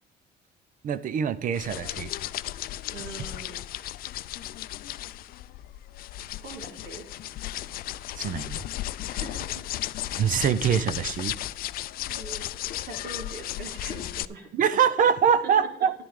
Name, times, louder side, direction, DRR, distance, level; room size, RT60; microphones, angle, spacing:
voice 1, 0.8-2.1 8.2-8.6 10.2-11.4 14.5-15.9, right 8 dB, 50° right, 15 dB, 0.7 m, -24 dB
sound 1, 1.5-14.2, left 14 dB, 60° left, 0.4 m, -35 dB
voice 2, 2.9-3.6 6.2-7.1 9.1-9.5 12.0-14.5, right 3 dB, 65° right, 3 dB, 2.9 m, -42 dB
10.5 x 10.0 x 3.8 m, 0.69 s
cardioid pair, 110°, 17 cm